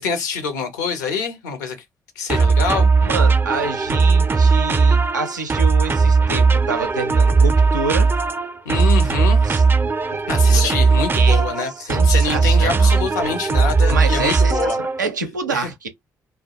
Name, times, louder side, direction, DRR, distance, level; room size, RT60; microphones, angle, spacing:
voice 1, 0.0-1.8 2.2-2.9 8.7-9.4 10.3-14.8 15.5-15.7, left 5 dB, 80° left, 0.6 m, -25 dB
sound 1, 2.3-15.1, right 4 dB, 25° right, 0.4 m, -17 dB
voice 2, 3.0-8.1 9.4-9.6 10.3-10.7 11.1-12.9 13.9-15.9, right 4 dB, 90° right, 0.4 m, -27 dB
2.1 x 2.1 x 2.7 m
figure-of-eight pair, 45°, 10 cm